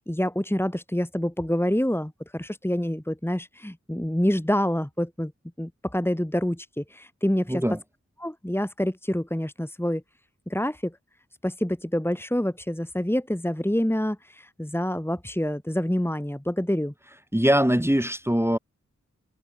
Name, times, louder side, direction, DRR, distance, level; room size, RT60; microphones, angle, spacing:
voice 1, 0.1-5.3 5.6-7.6 8.2-10.0 10.5-11.0 11.4-16.9, equal, 10° left, 2.7 m, -27 dB
voice 2, 7.5-7.8 17.3-18.6, equal, 10° right, 7.1 m, -22 dB
wide cardioid pair, 45°, 29 cm